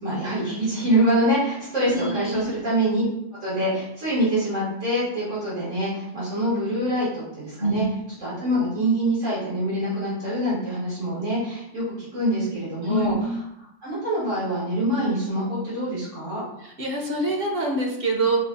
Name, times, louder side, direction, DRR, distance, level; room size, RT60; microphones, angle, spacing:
voice 1, 0.0-3.0 3.4-7.9 8.2-11.8 12.1-13.1 13.8-16.4, right 1 dB, 85° right, -9 dB, 2.4 m, -25 dB
voice 2, 1.9-2.5 7.6-7.8 12.8-13.1 16.6-18.4, right 1 dB, 55° right, 1 dB, 1.0 m, -25 dB
5.5 x 2.4 x 4.0 m, 0.83 s
omnidirectional pair, 1.2 m